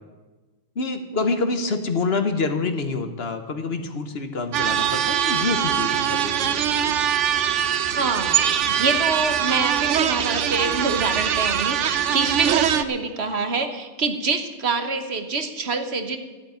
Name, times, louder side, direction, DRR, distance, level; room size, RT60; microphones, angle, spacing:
voice 1, 0.7-6.6, left 3 dB, 60° left, 7 dB, 1.4 m, -26 dB
sound 1, 4.5-12.8, right 9 dB, 85° right, 1.1 m, -22 dB
voice 2, 7.9-16.2, right 4 dB, 65° right, 7 dB, 1.4 m, -26 dB
13.5 x 8.2 x 9.5 m, 1.2 s
omnidirectional pair, 1.2 m